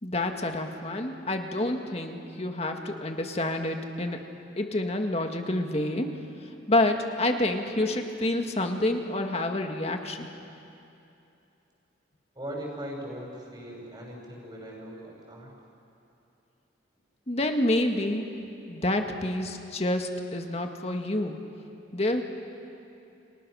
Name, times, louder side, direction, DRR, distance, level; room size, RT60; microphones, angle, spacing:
voice 1, 0.0-6.1 6.7-10.3 17.3-18.3 18.7-21.4 21.9-22.2, left 1 dB, 35° left, 4 dB, 1.9 m, -28 dB
voice 2, 12.4-15.5, equal, 20° right, -1 dB, 6.0 m, -39 dB
30.0 x 29.5 x 6.5 m, 2.8 s
head